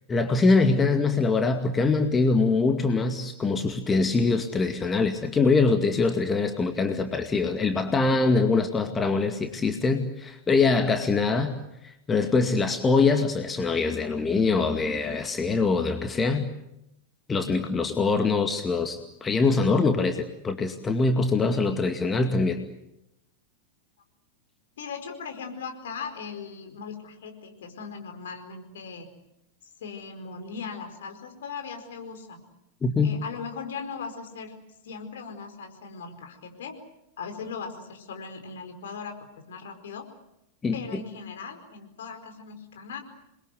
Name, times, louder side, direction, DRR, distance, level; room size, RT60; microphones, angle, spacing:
voice 1, 0.1-11.5 11.8-16.5 17.3-22.6 32.8-33.2 40.6-40.7, left 4 dB, 15° left, 6 dB, 2.2 m, -23 dB
voice 2, 24.8-29.1 29.8-32.4 33.0-34.5 34.8-36.8 37.2-40.1 40.7-43.0, left 5 dB, 60° left, 6 dB, 4.7 m, -38 dB
28.5 x 22.5 x 8.1 m, 0.85 s
figure-of-eight pair, 90°, 0 cm